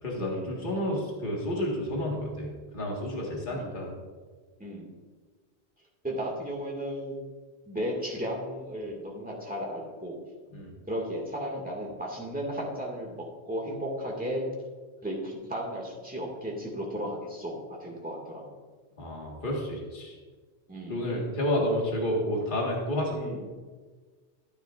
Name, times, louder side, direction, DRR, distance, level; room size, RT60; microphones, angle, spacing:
voice 1, 0.0-3.9 10.5-10.7 19.0-20.2 20.9-23.2, left 1 dB, 45° left, -2 dB, 1.9 m, -30 dB
voice 2, 3.5-3.9 4.6-4.9 6.0-7.2 7.7-10.2 10.9-14.4 15.0-18.6 20.7-21.1 23.1-23.4, equal, 5° right, -2 dB, 2.0 m, -35 dB
13.0 x 9.6 x 2.5 m, 1.4 s
omnidirectional pair, 1.2 m